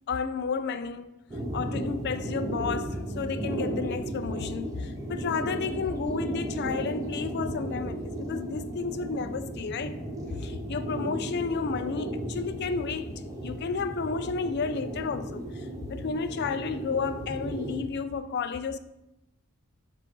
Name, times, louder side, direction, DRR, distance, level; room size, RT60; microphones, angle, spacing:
voice 1, 0.1-1.1 1.5-10.0 10.3-18.8, left 5 dB, 50° left, 0.4 m, -32 dB
sound 1, 1.3-17.8, right 1 dB, 15° right, 0.8 m, -35 dB
7.5 x 2.5 x 5.4 m
head